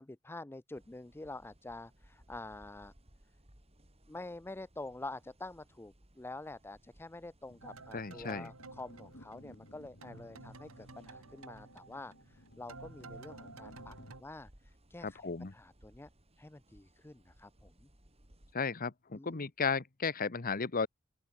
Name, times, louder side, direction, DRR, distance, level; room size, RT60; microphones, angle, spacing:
voice 1, 0.0-2.9 4.1-16.1 16.4-17.9 19.1-19.5, left 2 dB, 10° left, 0.5 m, -47 dB
sound 1, 0.7-18.5, right 1 dB, 30° right, 4.0 m, -64 dB
sound 2, 7.5-14.1, left 1 dB, 60° left, 3.5 m, -57 dB
sound 3, 7.6-9.7 10.0-14.2, right 3 dB, 90° right, 3.4 m, -52 dB
voice 2, 7.9-8.5 15.0-15.5 18.5-20.9, left 5 dB, 45° left, 1.0 m, -34 dB
open air
head